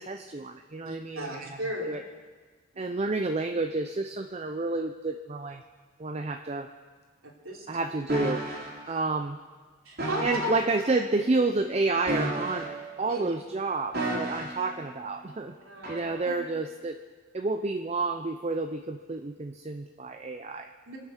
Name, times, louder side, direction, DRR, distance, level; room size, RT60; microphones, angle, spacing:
voice 1, 0.0-1.6 1.9-2.0 2.8-5.6 6.0-6.7 7.7-8.4 8.9-9.4 10.2-12.7 13.0-15.5 15.9-17.0 17.3-20.7, right 3 dB, 30° right, 6 dB, 0.5 m, -30 dB
voice 2, 0.8-1.9 2.7-2.9 7.2-7.7 8.9-9.0 9.8-10.5 13.1-13.3 14.6-14.7 15.6-15.9 20.9-21.0, equal, 85° right, -1 dB, 3.2 m, -35 dB
sound 1, 8.1-8.7 10.0-10.6 12.0-12.9 13.9-14.7 15.8-16.1, right 1 dB, 50° right, 3.1 m, -32 dB
25.0 x 9.1 x 6.3 m, 1.5 s
head